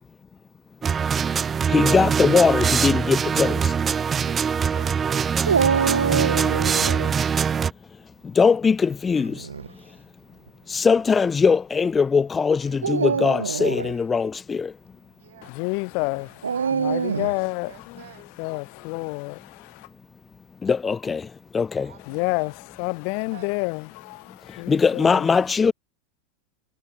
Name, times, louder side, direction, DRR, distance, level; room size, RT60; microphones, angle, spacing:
sound 1, 0.8-7.7, right 6 dB, 25° right, 0.9 m, -23 dB
voice 1, 1.7-3.7 8.2-9.5 10.7-14.7 20.6-21.9 24.7-25.7, left 5 dB, 20° left, 0.4 m, -21 dB
voice 2, 4.3-5.4 10.2-10.9 15.1-15.5 16.5-18.3 21.8-22.5 23.3-23.5, right 14 dB, 70° right, 7.3 m, -47 dB
Dog, 5.5-7.1 9.2-9.7 10.5-10.6 12.7-14.0 16.4-17.4, right 6 dB, 90° right, 0.3 m, -25 dB
voice 3, 15.4-18.0 18.4-19.9 22.1-25.3, left 40 dB or more, 55° left, 2.4 m, -29 dB
hypercardioid pair, 95°, 0 cm